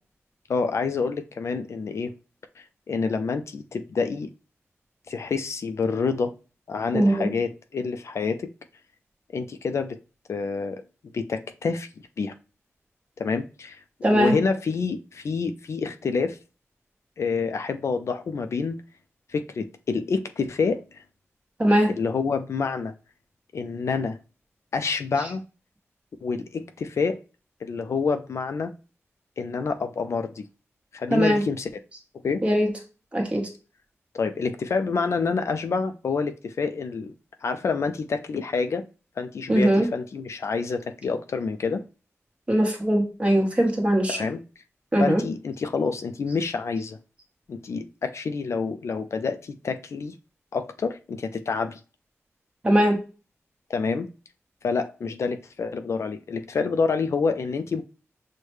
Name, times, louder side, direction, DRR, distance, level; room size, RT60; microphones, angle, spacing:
voice 1, 0.5-2.1 2.6-4.3 5.1-6.3 6.7-8.5 9.3-10.0 10.3-10.8 11.1-11.9 12.2-12.4 13.2-13.8 14.1-16.4 17.2-18.8 19.3-21.0 21.9-22.9 23.5-24.2 24.7-25.4 26.2-27.2 27.6-28.7 29.4-30.4 30.9-31.7 32.2-32.4 34.1-37.1 37.4-38.9 39.2-41.8 44.1-44.4 45.0-47.0 47.5-50.2 50.5-51.8 53.7-54.1 54.6-57.8, left 4 dB, 65° left, 0.4 m, -27 dB
voice 2, 6.9-7.3 14.0-14.3 21.6-21.9 31.1-31.4 32.4-32.7 33.1-33.5 39.5-39.9 42.5-44.2 44.9-45.2 52.6-53.0, right 1 dB, 25° right, 1.1 m, -20 dB
6.3 x 2.1 x 3.1 m
wide cardioid pair, 105°, 5 cm